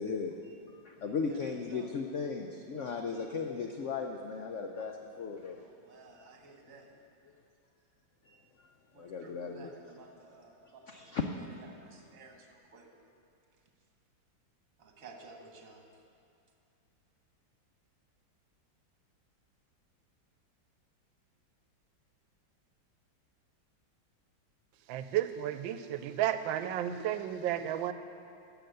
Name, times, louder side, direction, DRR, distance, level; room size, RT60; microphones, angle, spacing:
voice 1, 0.0-5.6 6.2-6.3 7.3-7.4 8.3-8.7 9.0-9.7 10.9-11.2, left 5 dB, 90° left, 3 dB, 0.6 m, -37 dB
voice 2, 1.3-1.9 5.5-6.9 8.9-12.9 14.8-15.8, right 3 dB, 45° right, 2 dB, 1.6 m, -54 dB
voice 3, 24.9-27.9, right 11 dB, 85° right, 11 dB, 1.3 m, -32 dB
12.0 x 6.9 x 7.7 m, 2.5 s
omnidirectional pair, 2.1 m